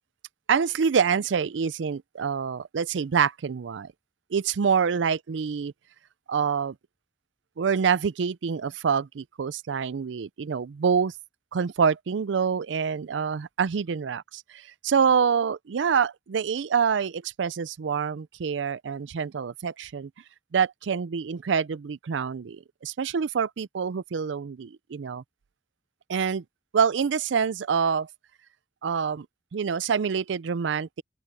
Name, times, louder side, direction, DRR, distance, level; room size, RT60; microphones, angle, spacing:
voice 1, 0.5-3.9 4.3-5.7 6.3-6.8 7.6-11.1 11.5-20.1 20.5-25.2 26.1-26.4 26.7-28.1 28.8-29.3 29.5-31.0, right 6 dB, 85° right, 0.4 m, -26 dB
open air
head